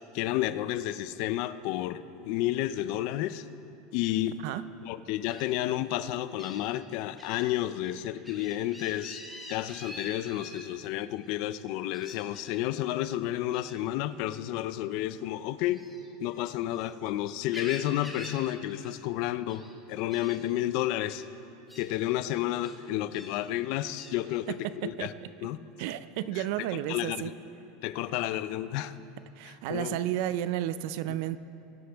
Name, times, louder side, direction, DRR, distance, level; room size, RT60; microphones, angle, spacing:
voice 1, 0.1-3.4 3.9-4.4 4.8-9.2 9.5-15.8 16.2-21.2 21.8-24.6 24.8-25.1 25.4-25.6 26.3-27.3 27.8-28.9 29.4-30.0 31.1-31.2, left 14 dB, 55° left, 14 dB, 0.4 m, -31 dB
Gull seagull, 5.3-5.5 6.4-6.6 7.2-7.4 7.8-10.6 11.9-12.6 13.5-13.8 15.7-16.9 17.3-18.4 18.7-18.9 19.3-19.7 20.1-20.4 21.1-21.3 21.7-21.9 22.6-23.3 24.0-24.2, left 1 dB, ahead, 1.4 m, -46 dB
voice 2, 24.5-25.1 25.8-27.3 29.4-31.4, right 13 dB, 60° right, 15 dB, 0.4 m, -32 dB
21.5 x 7.9 x 3.5 m, 2.8 s
supercardioid pair, 150°, 0 cm